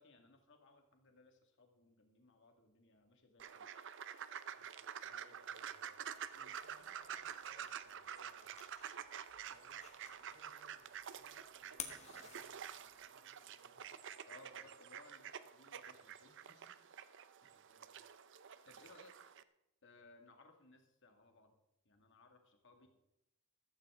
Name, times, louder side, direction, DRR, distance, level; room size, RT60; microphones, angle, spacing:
voice 1, 0.0-3.7 6.3-6.5 14.3-16.7 17.4-17.6 18.6-19.1 19.8-21.5 21.9-22.9, left 2 dB, 55° left, 4 dB, 2.1 m, -63 dB
sound 1, 3.4-19.4, right 8 dB, 55° right, 0.6 m, -49 dB
voice 2, 5.0-6.0 6.6-8.6 9.4-13.9 17.4-17.9 22.7-22.9, right 1 dB, 80° right, -2 dB, 6.0 m, -69 dB
sound 2, 6.1-13.1, left 7 dB, 30° left, 1.5 m, -55 dB
14.0 x 14.0 x 3.8 m, 0.89 s
head